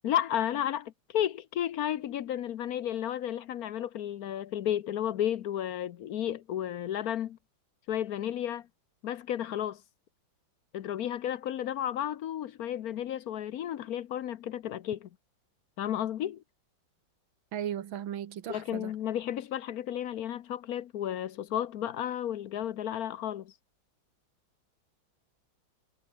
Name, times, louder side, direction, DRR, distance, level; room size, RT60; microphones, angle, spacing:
voice 1, 0.0-7.4 7.9-8.7 9.0-9.8 10.7-15.1 15.8-16.4 18.5-23.5, left 11 dB, 65° left, 0.9 m, -33 dB
voice 2, 17.5-18.9, right 10 dB, 70° right, 2.0 m, -36 dB
omnidirectional pair, 2.3 m